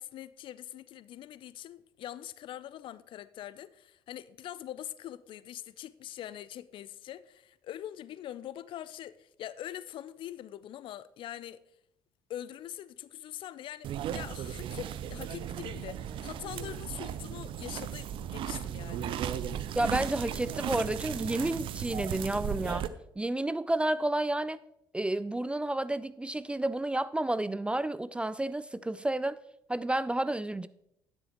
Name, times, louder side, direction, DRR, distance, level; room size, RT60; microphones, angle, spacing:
voice 1, 0.0-11.6 12.3-19.2, left 12 dB, 50° left, 0.5 m, -43 dB
sound 1, 13.8-22.9, right 10 dB, 50° right, 0.6 m, -36 dB
voice 2, 19.8-22.9 23.2-24.6 24.9-29.4 29.7-30.7, right 1 dB, 10° right, 0.3 m, -30 dB
11.5 x 9.9 x 3.0 m
figure-of-eight pair, 55°, 11 cm